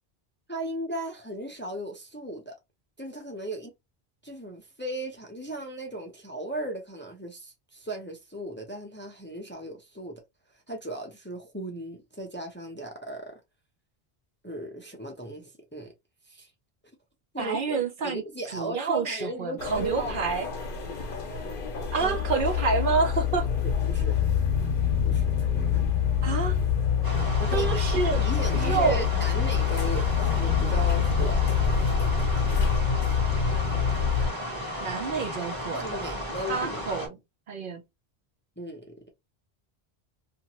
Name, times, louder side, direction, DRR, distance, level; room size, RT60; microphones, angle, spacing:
voice 1, 0.5-2.6 3.0-3.7 4.2-10.2 10.7-13.4 14.4-15.9 16.3-16.5 17.3-17.8 18.0-20.2 22.0-22.3 23.8-24.1 25.0-25.3 27.4-31.9 35.7-37.1 38.6-39.0, right 1 dB, 15° left, 0.6 m, -36 dB
voice 2, 17.4-18.2 18.5-20.5 21.9-23.5 26.2-26.6 27.5-28.2 28.5-29.0 34.8-36.2 36.5-37.1 37.5-37.8, right 4 dB, 60° right, 0.7 m, -28 dB
sound 1, 19.6-34.3, left 7 dB, 60° left, 0.9 m, -26 dB
sound 2, 27.0-37.1, equal, 20° right, 1.0 m, -34 dB
2.5 x 2.5 x 2.9 m
omnidirectional pair, 1.0 m